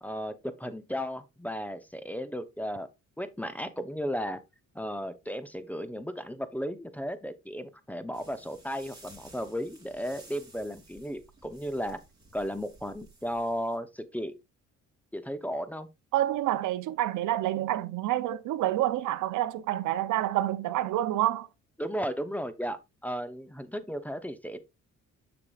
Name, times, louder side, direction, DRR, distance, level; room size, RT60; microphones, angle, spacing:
voice 1, 0.0-2.9 3.2-4.4 4.7-12.0 12.3-14.3 15.1-15.9 21.8-24.6, equal, 5° left, 0.7 m, -35 dB
sound 1, 8.1-13.8, right 2 dB, 15° right, 2.8 m, -55 dB
voice 2, 16.1-21.5, right 13 dB, 85° right, 0.6 m, -28 dB
6.9 x 6.7 x 2.4 m
cardioid pair, 90°, 30 cm